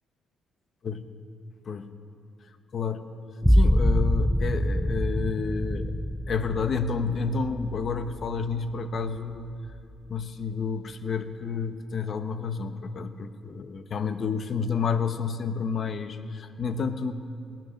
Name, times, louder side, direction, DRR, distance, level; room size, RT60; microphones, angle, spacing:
voice 1, 2.7-3.1 3.5-5.9 6.3-9.5 10.1-17.1, left 5 dB, 50° left, 10 dB, 0.9 m, -30 dB
sound 1, 3.4-8.9 9.3-10.0, equal, ahead, 0.4 m, -25 dB
18.5 x 10.5 x 6.4 m, 2.5 s
cardioid pair, 90°, 0 cm